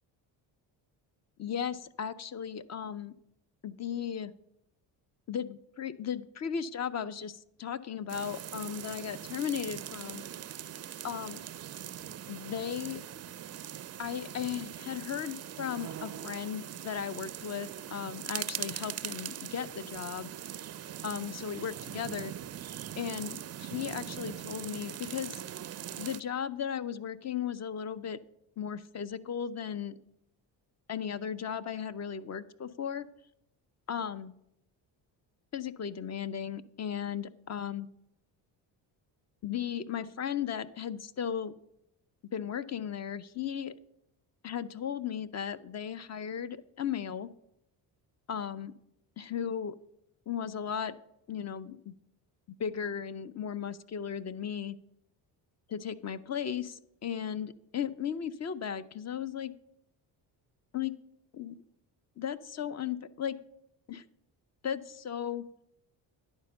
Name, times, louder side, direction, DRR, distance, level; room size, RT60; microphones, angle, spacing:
voice 1, 1.4-3.1 3.6-4.3 5.3-10.3 11.0-11.4 12.3-13.0 14.0-20.3 21.0-22.3 23.0-25.4 26.0-28.2 28.6-30.0 30.9-33.1 33.9-34.3 35.5-37.9 39.4-41.5 42.3-43.7 44.4-47.3 48.3-48.7 49.2-49.8 50.3-51.0 51.3-51.9 52.6-54.8 55.7-59.5 60.7-60.9 61.3-61.6 62.2-63.4 63.9-64.0 64.6-65.4, left 8 dB, 35° left, 14 dB, 0.5 m, -36 dB
sound 1, 8.1-26.2, right 10 dB, 35° right, 0.4 m, -41 dB
10.5 x 4.4 x 6.6 m, 0.78 s
supercardioid pair, 60°, 50 cm